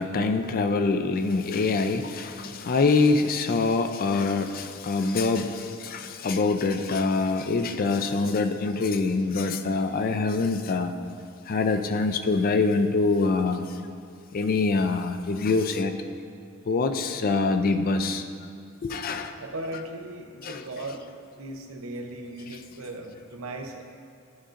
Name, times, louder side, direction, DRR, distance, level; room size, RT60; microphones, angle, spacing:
voice 1, 0.0-10.9 11.5-13.6 14.3-15.9 16.7-18.2 18.8-19.3 20.4-20.6, left 3 dB, 45° left, 8 dB, 0.4 m, -25 dB
voice 2, 19.4-21.0 21.3-23.8, right 1 dB, 90° right, 4 dB, 0.7 m, -37 dB
11.0 x 5.1 x 2.5 m, 2.3 s
head